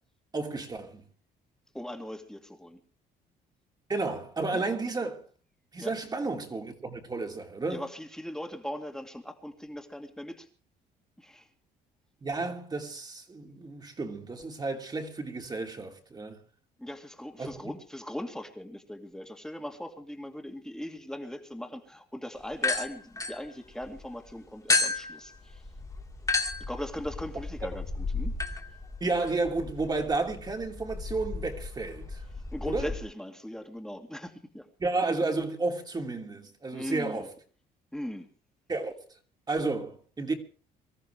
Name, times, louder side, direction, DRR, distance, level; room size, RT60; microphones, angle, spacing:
voice 1, 0.3-1.0 3.9-5.2 5.7-7.8 12.2-16.4 17.4-17.5 29.0-32.2 32.6-32.9 34.8-37.3 38.7-38.9 39.5-40.3, right 3 dB, 25° right, 2.8 m, -32 dB
voice 2, 1.7-2.8 4.5-4.7 5.8-5.9 7.7-10.5 11.2-11.4 16.8-25.5 26.7-28.3 32.5-34.6 36.7-37.3 37.9-38.3, left 1 dB, 5° left, 2.4 m, -39 dB
sound 1, 22.5-24.0 24.7-33.0, left 3 dB, 20° left, 2.5 m, -33 dB
24.5 x 14.0 x 3.4 m
cardioid pair, 110°, 17 cm